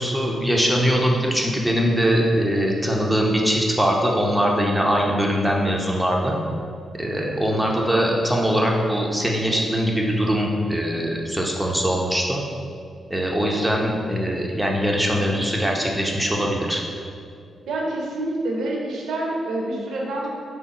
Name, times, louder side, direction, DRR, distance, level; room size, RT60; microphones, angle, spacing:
voice 1, 0.0-6.4 7.0-12.4 13.1-16.8, equal, 5° right, -1 dB, 0.8 m, -22 dB
voice 2, 17.7-20.3, right 2 dB, 75° right, -2 dB, 0.8 m, -27 dB
5.0 x 2.1 x 4.1 m, 2.3 s
hypercardioid pair, 40°, 0 cm